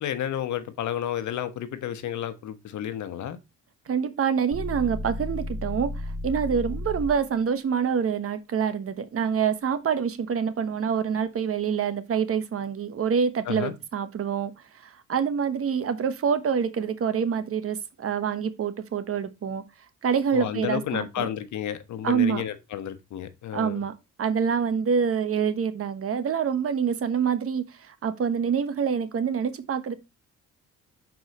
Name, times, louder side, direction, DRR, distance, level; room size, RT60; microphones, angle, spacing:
voice 1, 0.0-3.4 13.5-13.7 20.3-23.8, left 10 dB, 70° left, 1.1 m, -31 dB
voice 2, 3.9-14.5 14.8-19.6 20.0-21.3 22.0-22.4 23.5-23.9 24.2-30.0, right 7 dB, 50° right, 1.0 m, -26 dB
sound 1, 4.5-7.3, left 1 dB, 5° left, 2.1 m, -33 dB
6.3 x 4.8 x 4.1 m
cardioid pair, 90°, 30 cm